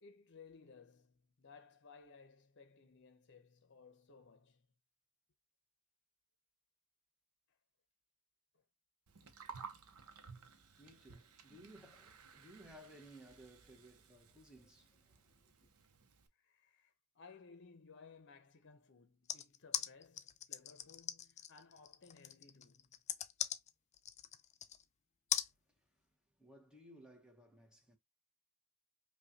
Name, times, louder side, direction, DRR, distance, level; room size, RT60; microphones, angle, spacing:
voice 1, 0.0-4.7 16.4-23.0, left 5 dB, 55° left, 0.7 m, -60 dB
Gurgling, 9.1-16.3, right 5 dB, 85° right, 0.7 m, -56 dB
voice 2, 9.9-15.7 25.7-26.0 26.4-28.0, right 1 dB, 5° right, 1.0 m, -60 dB
sound 1, 19.3-24.8 25.3-25.5, left 10 dB, 30° left, 0.3 m, -40 dB
5.4 x 2.3 x 2.7 m
head